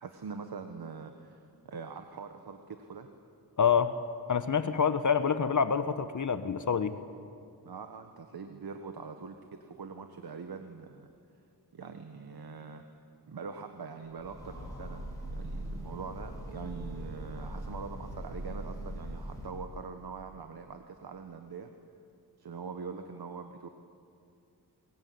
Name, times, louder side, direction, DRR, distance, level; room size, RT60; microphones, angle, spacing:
voice 1, 0.0-3.1 7.6-11.1 11.7-12.8 13.3-21.7 22.4-23.7, right 5 dB, 70° right, 6 dB, 1.6 m, -43 dB
voice 2, 3.6-3.9 4.3-7.0, left 6 dB, 50° left, 10 dB, 1.1 m, -27 dB
Train, 14.1-19.8, right 1 dB, 10° left, 6.9 m, -41 dB
22.5 x 21.0 x 9.6 m, 2.4 s
wide cardioid pair, 85°, 40 cm